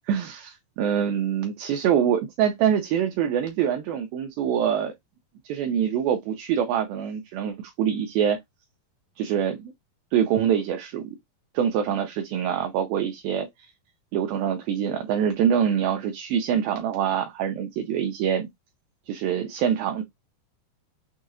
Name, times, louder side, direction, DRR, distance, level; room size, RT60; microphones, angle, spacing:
voice 1, 0.1-4.9 5.5-8.4 9.2-9.7 10.1-11.0 11.5-13.7 14.1-18.5 19.1-20.0, right 8 dB, 80° right, 2.3 m, -25 dB
6.3 x 2.8 x 2.5 m
omnidirectional pair, 4.5 m